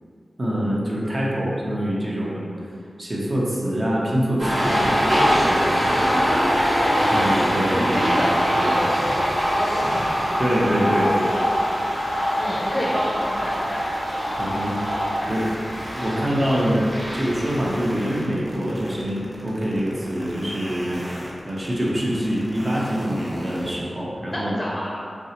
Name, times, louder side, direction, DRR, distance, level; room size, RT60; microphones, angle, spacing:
voice 1, 0.4-2.4 3.0-4.9 5.2-5.7 7.1-8.2 8.6-8.8 10.4-11.3 14.4-14.9 15.3-15.5 16.0-16.8 17.1-21.0 21.5-24.6, equal, 45° right, -5 dB, 0.7 m, -25 dB
sound 1, 4.4-18.2, equal, 75° right, 1.2 m, -23 dB
voice 2, 6.1-7.4 7.9-10.0 12.4-13.9 24.3-24.9, equal, 20° left, -5 dB, 0.5 m, -29 dB
sound 2, 13.2-23.8, equal, 5° right, 1.1 m, -39 dB
3.3 x 2.6 x 2.8 m, 2.3 s
cardioid pair, 40°, 0 cm